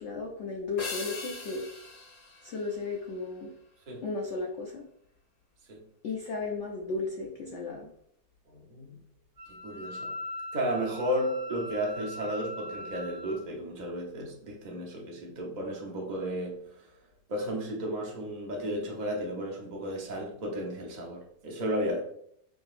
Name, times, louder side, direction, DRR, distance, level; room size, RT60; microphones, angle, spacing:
voice 1, 0.0-1.6 2.4-3.5 4.0-4.8 6.0-7.9, left 3 dB, 80° left, -1 dB, 0.6 m, -34 dB
sound 1, 0.8-3.4, left 3 dB, 55° left, 1.0 m, -41 dB
voice 2, 8.5-9.0 9.6-10.1 10.5-16.9 17.3-22.0, equal, 40° right, -1 dB, 0.7 m, -33 dB
Wind instrument woodwind instrument, 9.4-13.4, left 1 dB, 70° right, 1.3 m, -41 dB
5.0 x 2.8 x 2.4 m, 0.69 s
omnidirectional pair, 1.9 m